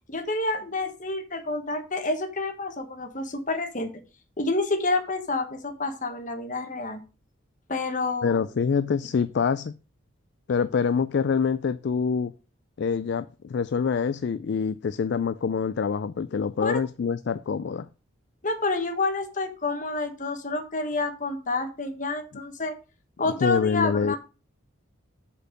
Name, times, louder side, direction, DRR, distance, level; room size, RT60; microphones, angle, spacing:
voice 1, 0.1-3.9 4.4-7.0 7.7-8.4 16.6-16.8 18.4-22.7 23.2-24.2, left 3 dB, 35° left, 1.3 m, -28 dB
voice 2, 8.2-9.7 10.5-12.3 12.8-17.9 23.2-24.2, left 6 dB, 55° left, 0.3 m, -25 dB
8.0 x 4.5 x 6.5 m
head